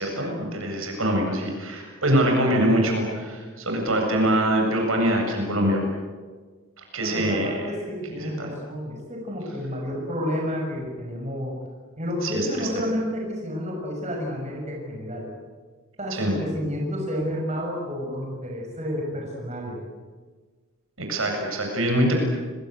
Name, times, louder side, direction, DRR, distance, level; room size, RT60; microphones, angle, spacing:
voice 1, 0.0-5.9 6.8-7.5 8.2-8.5 12.2-12.7 16.1-16.4 21.0-22.2, right 1 dB, 75° right, 2 dB, 7.8 m, -24 dB
voice 2, 7.0-11.6 12.0-15.3 16.0-19.8, equal, 30° right, -1 dB, 6.4 m, -30 dB
30.0 x 22.0 x 8.1 m, 1.4 s
head